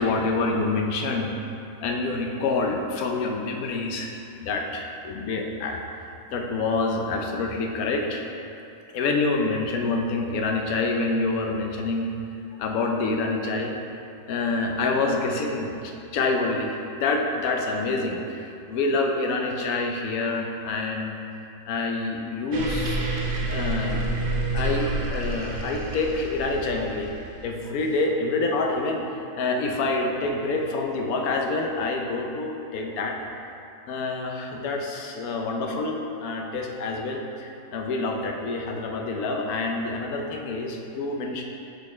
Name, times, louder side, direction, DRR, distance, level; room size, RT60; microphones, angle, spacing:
voice 1, 0.0-1.3 1.8-5.8 6.3-8.2 8.9-12.1 12.6-13.7 14.3-21.2 21.7-23.0 23.5-24.1 24.5-27.1 27.4-33.2 33.9-41.4, left 3 dB, 70° left, 2 dB, 1.1 m, -27 dB
sound 1, 22.5-27.5, right 2 dB, 50° right, 0.6 m, -29 dB
8.4 x 4.0 x 3.2 m, 2.7 s
omnidirectional pair, 1.7 m